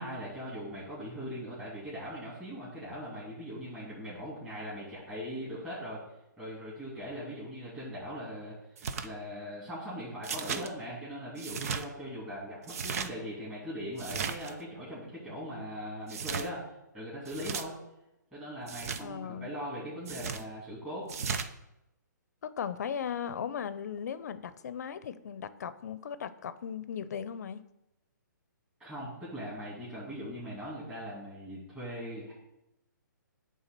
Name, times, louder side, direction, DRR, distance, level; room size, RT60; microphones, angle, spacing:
voice 1, 0.0-6.0 6.4-8.5 9.0-16.6 16.9-17.8 18.3-21.1 28.8-32.3, equal, 10° right, -11 dB, 3.0 m, -40 dB
sound 1, 8.8-9.1 10.2-10.7 11.4-11.8 12.6-13.1 14.0-14.5 16.1-16.5 17.3-17.6 18.7-19.0 20.1-20.4 21.1-21.5, right 6 dB, 50° right, 0.7 m, -35 dB
voice 2, 19.0-19.5 22.4-27.6, left 7 dB, 55° left, 14 dB, 0.7 m, -37 dB
9.1 x 3.9 x 6.8 m, 0.90 s
hypercardioid pair, 155°, 11 cm